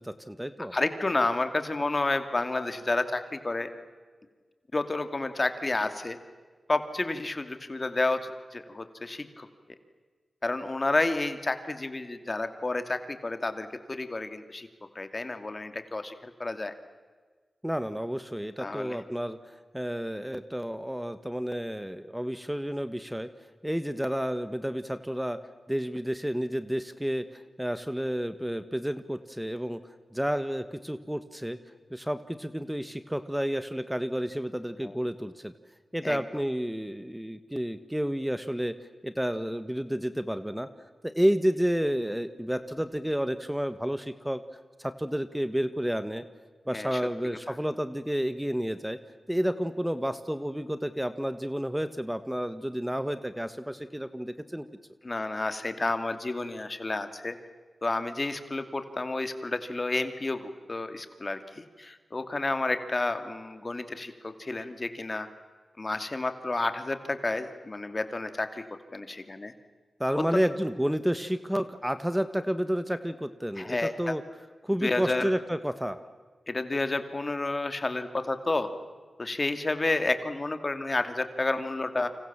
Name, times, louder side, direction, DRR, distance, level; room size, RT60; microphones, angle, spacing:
voice 1, 0.0-0.8 17.6-23.3 23.6-25.4 25.7-29.8 30.1-31.6 31.9-35.5 35.9-38.7 39.0-40.7 41.0-44.4 44.8-46.2 46.7-49.0 49.3-54.7 70.0-74.2 74.6-76.0, equal, 5° right, 11 dB, 1.4 m, -30 dB
voice 2, 0.7-3.7 4.7-6.2 6.7-8.2 8.5-9.5 10.4-14.7 14.9-16.7 18.6-19.0 34.8-34.9 36.0-36.2 46.7-47.0 55.0-57.3 57.8-65.3 65.8-68.6 68.9-69.5 70.2-70.4 73.6-74.2 74.8-75.3 76.5-78.7 79.2-82.1, left 2 dB, 40° left, 9 dB, 2.5 m, -30 dB
29.0 x 26.0 x 7.5 m, 1.5 s
cardioid pair, 45°, 0 cm